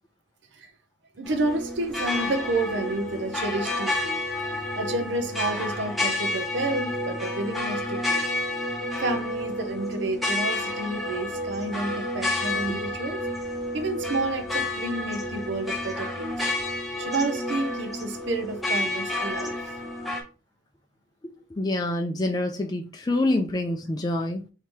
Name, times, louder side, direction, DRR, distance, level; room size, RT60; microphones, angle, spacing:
sound 1, 1.2-20.2, left 2 dB, ahead, 0.8 m, -30 dB
voice 1, 1.2-4.2 4.7-8.2 9.0-13.2 13.7-16.5 17.0-19.8, right 2 dB, 70° right, 0.6 m, -30 dB
voice 2, 21.5-24.4, left 1 dB, 20° left, 0.3 m, -26 dB
3.2 x 2.8 x 4.5 m
head